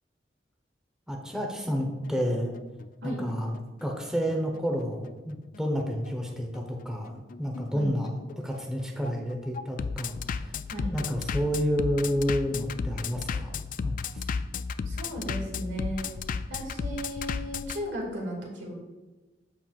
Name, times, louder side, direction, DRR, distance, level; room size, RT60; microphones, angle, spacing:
voice 1, 1.1-2.5 3.0-10.5 10.9-13.5 13.8-14.2, equal, 5° right, 1 dB, 0.9 m, -30 dB
Bass drum, 1.8-17.8, left 5 dB, 45° left, 0.3 m, -34 dB
voice 2, 14.9-16.1 16.5-18.7, equal, 85° right, -1 dB, 2.2 m, -35 dB
13.5 x 4.5 x 2.4 m, 1.2 s
head